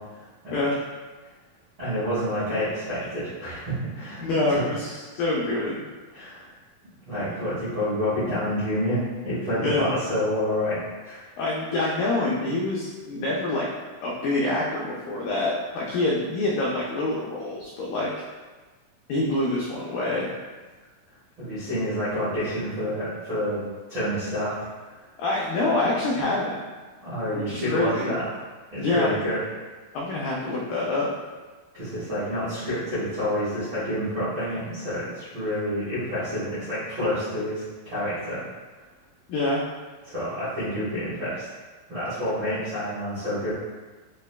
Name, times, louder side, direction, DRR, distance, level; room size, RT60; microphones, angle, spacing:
voice 1, 0.1-0.6 1.8-4.2 4.5-4.6 6.1-6.5 7.1-10.8 11.0-11.3 15.9-16.0 21.4-23.6 23.9-24.6 24.9-25.0 27.0-28.2 28.7-29.4 31.7-38.4 40.1-41.5 41.9-43.5, equal, 80° right, -13 dB, 1.1 m, -28 dB
voice 2, 4.2-5.8 9.6-9.9 11.4-13.7 14.0-18.1 19.1-20.3 25.2-26.6 27.3-28.1 28.7-29.2 29.9-31.1 39.3-39.6, left 2 dB, 90° left, -4 dB, 1.9 m, -26 dB
5.9 x 2.1 x 2.2 m, 1.3 s
omnidirectional pair, 4.5 m